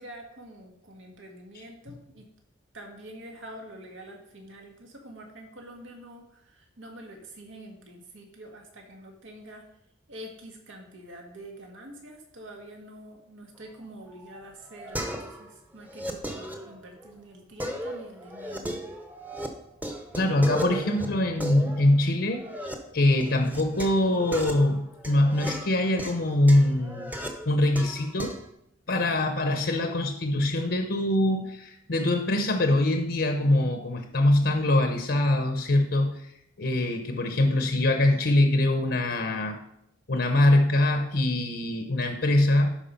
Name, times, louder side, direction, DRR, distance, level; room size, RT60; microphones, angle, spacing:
voice 1, 0.0-2.3 2.7-9.6 10.1-18.7, right 1 dB, 80° right, 1 dB, 1.9 m, -46 dB
sound 1, 14.1-15.5 15.8-17.1 17.6-19.5 19.8-22.7 23.2-28.5, equal, 10° right, 0.9 m, -36 dB
voice 2, 20.1-22.4 22.9-27.1 27.5-28.4 28.9-36.3 36.6-39.6 40.1-42.8, left 1 dB, 60° left, 5 dB, 0.9 m, -23 dB
11.5 x 4.8 x 5.3 m, 0.77 s
head